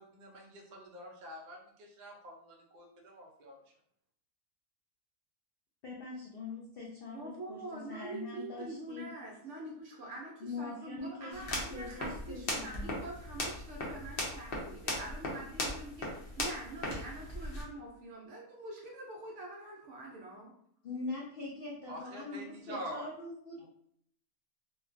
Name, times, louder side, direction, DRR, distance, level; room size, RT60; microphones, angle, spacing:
voice 1, 0.0-3.5 21.9-23.1 23.6-23.7, right 1 dB, 80° right, -1 dB, 0.4 m, -46 dB
voice 2, 5.8-9.1 10.4-12.9 20.8-23.7, left 3 dB, 85° left, -3 dB, 0.5 m, -43 dB
voice 3, 7.1-20.5, right 2 dB, 65° right, -1 dB, 0.8 m, -45 dB
sound 1, 11.3-17.6, left 1 dB, 50° left, 0.7 m, -38 dB
3.1 x 2.2 x 2.5 m, 0.68 s
omnidirectional pair, 1.6 m